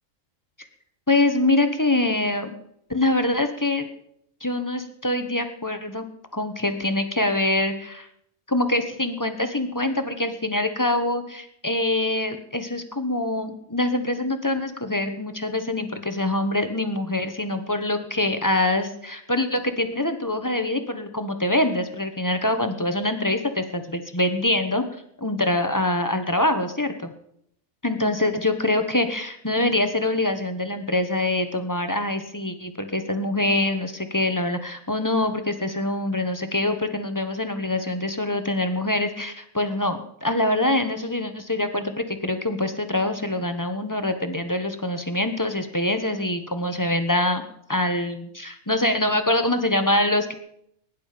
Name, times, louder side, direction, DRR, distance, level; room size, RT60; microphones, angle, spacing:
voice 1, 1.1-2.5 2.9-3.9 4.4-6.0 6.3-8.1 8.5-24.8 25.2-27.1 27.8-47.4 47.7-50.3, left 1 dB, 15° left, 7 dB, 1.1 m, -24 dB
22.5 x 11.0 x 5.2 m, 0.73 s
omnidirectional pair, 1.5 m